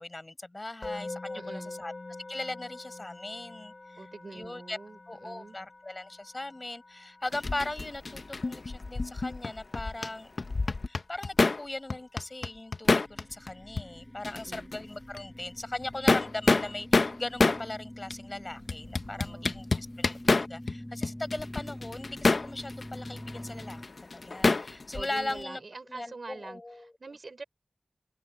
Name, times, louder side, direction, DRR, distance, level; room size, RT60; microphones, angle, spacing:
voice 1, 0.0-1.9 2.3-4.0 4.3-4.8 5.1-10.3 10.9-25.6 25.9-26.9, left 2 dB, 40° left, 6.6 m, -39 dB
Musical instrument, 0.8-11.9, left 2 dB, 55° left, 5.0 m, -46 dB
voice 2, 1.3-1.8 4.0-5.6 14.3-14.7 19.0-19.5 24.9-27.4, right 3 dB, 75° right, 5.3 m, -45 dB
sound 1, 7.3-10.1 10.4-11.6 11.9-13.5 13.8-13.9 14.2-14.8 15.1-15.2 15.8-17.6 18.1-18.2 18.7-20.7 21.0-25.4, left 3 dB, 75° left, 0.9 m, -27 dB
sound 2, 13.1-23.9, left 1 dB, 15° left, 8.0 m, -45 dB
open air
wide cardioid pair, 65°, 0 cm